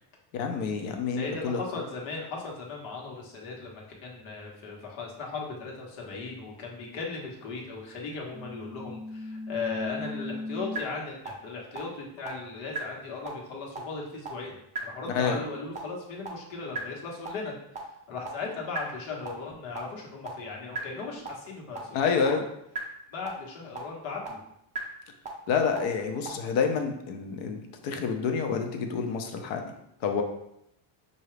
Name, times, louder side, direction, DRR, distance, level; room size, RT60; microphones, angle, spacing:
voice 1, 0.3-1.6 15.1-15.4 21.9-22.4 25.5-29.6 30.0-30.2, left 5 dB, 65° left, 5 dB, 0.8 m, -28 dB
voice 2, 1.2-17.5 18.1-22.4 23.1-24.4, left 4 dB, 85° left, -1 dB, 1.4 m, -37 dB
sound 1, 8.3-10.8 11.3-11.4 11.8-11.9 12.3-12.4 12.8-12.9 13.3-13.4 13.8-13.9 14.3-14.4 14.8-14.9 15.3-15.4 15.8-15.9 16.3-16.4 16.8-16.9 17.3-17.4 17.8-17.9 18.3-18.4 18.8-18.9 19.3-19.4 19.8-19.9 20.3-20.4 20.8-20.9 21.3-21.4 21.8-21.9 22.3-22.4 22.8-22.9 23.3-23.4 23.8-23.9 24.3-24.4 24.8-24.9 25.3-25.4 25.8-25.9 26.3-26.4, right 2 dB, 15° right, 0.3 m, -35 dB
5.7 x 2.7 x 3.2 m, 0.78 s
cardioid pair, 170°, 49 cm